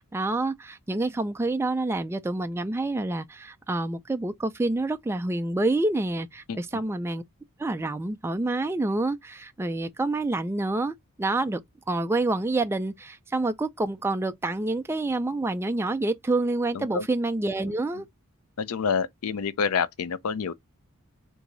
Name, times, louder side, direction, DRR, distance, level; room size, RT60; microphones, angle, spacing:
voice 1, 0.0-7.2 7.6-11.6 11.9-18.1, right 2 dB, 10° right, 0.3 m, -27 dB
voice 2, 16.7-17.1 18.6-20.5, left 6 dB, 75° left, 0.5 m, -27 dB
4.6 x 2.7 x 3.9 m
head